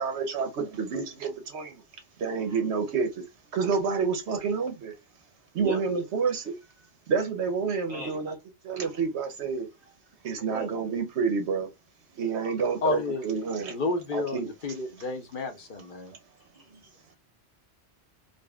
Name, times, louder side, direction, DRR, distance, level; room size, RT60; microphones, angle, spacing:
voice 1, 0.0-1.8 2.2-3.1 3.5-4.9 5.5-6.6 7.1-8.3 8.6-9.7 10.2-11.7 12.2-13.7 14.1-14.5, right 5 dB, 75° right, 1.1 m, -28 dB
voice 2, 10.5-11.0 16.5-16.9, right 3 dB, 40° right, 1.4 m, -38 dB
voice 3, 12.8-13.2 13.7-16.1, left 3 dB, 50° left, 0.8 m, -31 dB
4.0 x 2.1 x 3.5 m
omnidirectional pair, 1.2 m